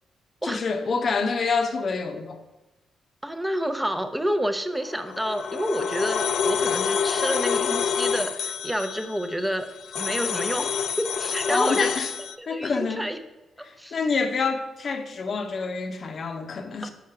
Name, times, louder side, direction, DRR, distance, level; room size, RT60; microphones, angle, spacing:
voice 1, 0.4-2.4 11.5-12.1 12.5-13.0 13.6-16.9, left 4 dB, 50° left, 0.8 m, -27 dB
voice 2, 3.2-9.7 9.9-11.9 12.4-13.2 13.8-14.0 16.8-16.9, equal, 5° right, 0.7 m, -29 dB
sound 1, 4.9-12.4, left 7 dB, 75° left, 0.3 m, -28 dB
5.6 x 5.0 x 5.7 m
cardioid pair, 80°, 0 cm